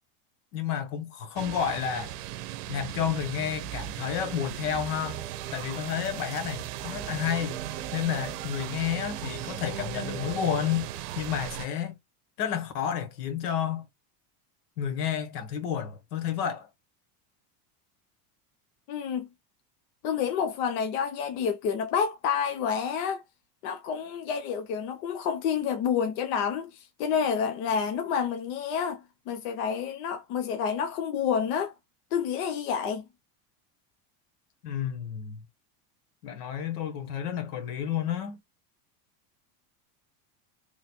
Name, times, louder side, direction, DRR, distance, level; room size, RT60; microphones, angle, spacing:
voice 1, 0.5-2.2 2.7-5.2 5.5-7.6 7.9-11.9 12.4-13.8 14.8-16.7 34.6-35.4 36.2-38.4, left 9 dB, 85° left, 1.1 m, -31 dB
sound 1, 1.4-11.7, right 14 dB, 90° right, 0.6 m, -38 dB
sound 2, 4.9-11.0, right 9 dB, 40° right, 0.5 m, -40 dB
voice 2, 18.9-19.3 20.0-23.2 23.6-31.7 32.1-33.0, left 7 dB, 65° left, 0.7 m, -29 dB
3.1 x 2.2 x 4.2 m
cardioid pair, 175°, 45 cm